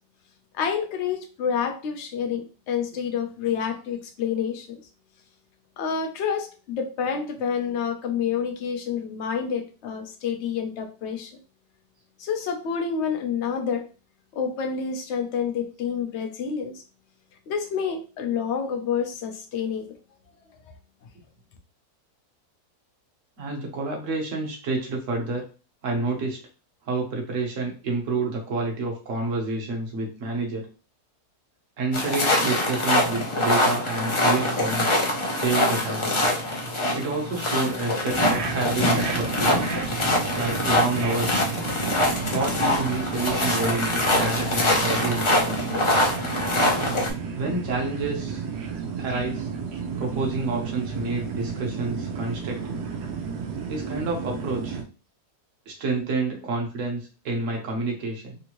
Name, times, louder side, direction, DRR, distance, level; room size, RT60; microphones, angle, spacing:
voice 1, 0.5-4.8 5.8-11.3 12.2-13.9 14.3-16.8 17.5-19.9, left 7 dB, 60° left, 5 dB, 0.8 m, -28 dB
voice 2, 23.4-25.4 25.8-26.4 26.8-30.7 31.8-35.0 35.3-36.1 36.9-39.6 40.3-41.5 42.3-45.6 47.3-48.4 49.0-49.5 50.0-52.8 53.7-54.8 55.7-58.4, right 3 dB, 55° right, 1 dB, 1.3 m, -29 dB
sound 1, 31.9-47.1, left 1 dB, 35° left, 0.4 m, -24 dB
sound 2, 38.1-54.8, right 5 dB, 90° right, 1.3 m, -32 dB
3.6 x 2.7 x 3.0 m, 0.34 s
omnidirectional pair, 1.6 m